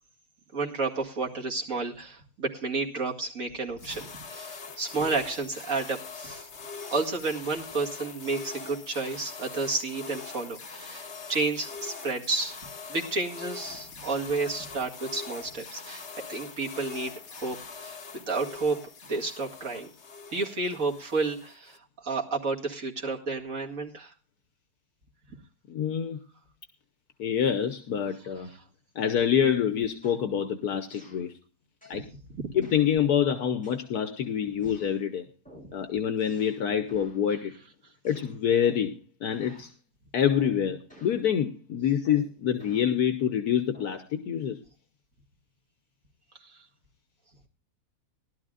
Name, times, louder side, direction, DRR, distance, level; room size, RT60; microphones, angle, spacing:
voice 1, 0.5-6.5 6.9-12.6 12.9-18.8 19.1-19.9 20.3-21.8 22.0-24.1 28.5-28.6 31.9-32.0 32.3-32.5 46.4-46.6, right 3 dB, 55° right, 0 dB, 2.5 m, -31 dB
sound 1, 3.8-21.8, left 5 dB, 45° left, 1.3 m, -43 dB
voice 2, 25.7-26.2 27.2-28.5 28.9-31.3 31.9-32.0 32.5-35.3 35.7-37.5 38.0-39.7 40.1-44.6, left 8 dB, 70° left, 8 dB, 1.4 m, -26 dB
sound 2, 29.2-29.5 30.0-30.3 30.9-31.3 31.8-32.1 32.6-32.9 33.6-34.2 34.6-35.0 35.4-35.8 36.2-36.6 36.9-37.2 38.0-39.0 39.3-39.7 40.3-40.6 40.9-41.2 42.0-42.9 43.7-44.0, equal, 5° left, 7.4 m, -52 dB
20.0 x 12.0 x 2.4 m, 0.33 s
omnidirectional pair, 1.7 m